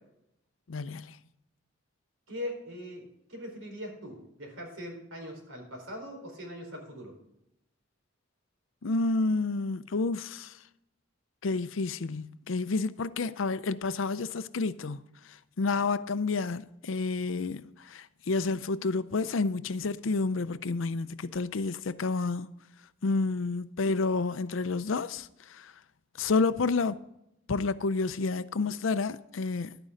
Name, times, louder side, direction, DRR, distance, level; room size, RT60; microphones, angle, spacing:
voice 1, 0.7-1.2 8.8-10.6 11.4-22.5 23.0-25.7 26.2-27.0 27.5-29.8, left 3 dB, 75° left, 0.5 m, -30 dB
voice 2, 2.3-3.0 3.3-7.1, left 1 dB, 85° right, 4.4 m, -41 dB
12.0 x 9.3 x 3.8 m
head